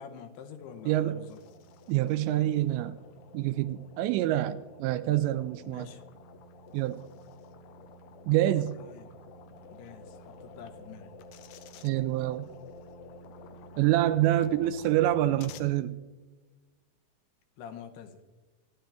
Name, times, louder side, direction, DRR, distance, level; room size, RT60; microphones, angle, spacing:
voice 1, 0.0-1.4 5.6-6.0 8.7-9.2 9.7-11.1 17.6-18.2, left 7 dB, 75° left, 7 dB, 2.7 m, -46 dB
sound 1, 0.6-15.6, left 2 dB, 90° left, 3.4 m, -50 dB
voice 2, 0.9-1.2 1.9-3.0 3.3-5.9 6.7-7.1 8.3-8.8 11.8-12.5 13.8-16.0, right 14 dB, 85° right, 13 dB, 2.7 m, -26 dB
27.5 x 10.5 x 3.5 m, 1.3 s
omnidirectional pair, 5.3 m